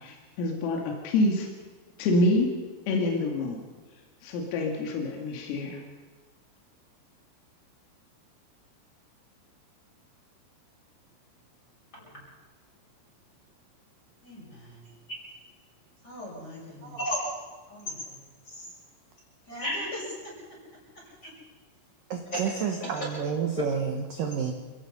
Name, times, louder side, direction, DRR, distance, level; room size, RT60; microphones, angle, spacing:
voice 1, 0.0-1.5 2.0-2.5 2.9-3.6 4.2-5.8, left 2 dB, 80° left, 1 dB, 4.8 m, -26 dB
voice 2, 14.2-14.8 16.0-17.2 17.7-18.2 18.5-18.7 19.5-20.3 21.2-21.3 22.3-22.4, equal, 20° left, -4 dB, 7.2 m, -35 dB
voice 3, 22.1-24.5, right 7 dB, 70° right, 4 dB, 2.0 m, -30 dB
28.5 x 17.5 x 5.5 m, 1.4 s
omnidirectional pair, 6.0 m